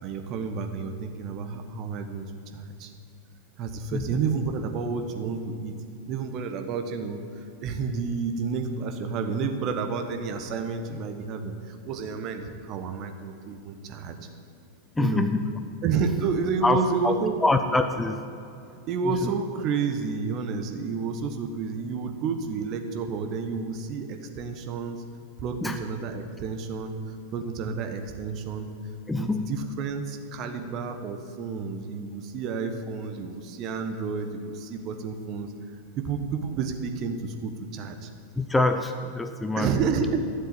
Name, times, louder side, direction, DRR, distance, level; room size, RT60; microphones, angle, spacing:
voice 1, 0.0-2.2 2.5-2.9 3.6-5.8 6.1-14.2 15.0-15.3 15.8-17.4 18.9-25.0 25.4-26.9 27.3-28.7 29.1-35.5 36.0-38.1 39.6-40.2, right 5 dB, 40° right, 6 dB, 1.2 m, -30 dB
voice 2, 15.0-15.5 16.6-17.1 17.4-18.3 19.0-19.3 25.6-25.8 29.1-29.5 38.4-39.7, left 2 dB, 10° left, 8 dB, 0.6 m, -25 dB
12.5 x 7.6 x 8.6 m, 2.6 s
figure-of-eight pair, 90°, 0 cm